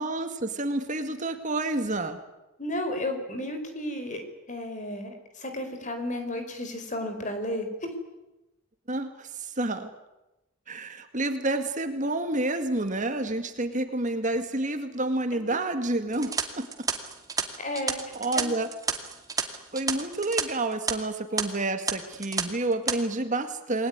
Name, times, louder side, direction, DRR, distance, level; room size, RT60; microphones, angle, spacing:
voice 1, 0.0-2.2 8.9-9.9 10.7-16.7 18.1-18.7 19.7-23.9, right 2 dB, 35° right, 8 dB, 2.0 m, -29 dB
voice 2, 2.6-4.2 4.5-7.9 15.5-15.6 17.6-18.0 18.3-18.5, left 1 dB, 35° left, 7 dB, 4.8 m, -33 dB
sound 1, 16.1-20.4 20.7-20.9 21.4-21.5 21.9-22.4 22.7-23.0, right 5 dB, 15° right, 2.3 m, -30 dB
29.0 x 21.0 x 9.6 m, 0.99 s
head